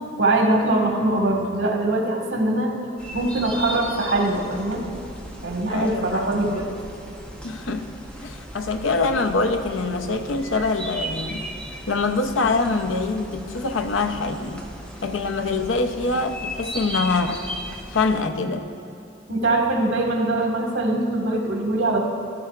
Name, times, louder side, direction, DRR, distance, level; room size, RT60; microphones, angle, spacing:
voice 1, 0.2-2.8 3.1-4.8 5.4-6.7 19.3-22.0, right 2 dB, 85° right, 1 dB, 1.5 m, -22 dB
sound 1, 3.0-18.2, equal, 5° left, 0.9 m, -36 dB
voice 2, 5.7-6.6 7.4-7.9 8.2-11.5 11.9-14.7 15.0-17.4 17.9-18.7, left 3 dB, 90° left, 6 dB, 0.7 m, -24 dB
15.5 x 11.5 x 2.4 m, 2.7 s
head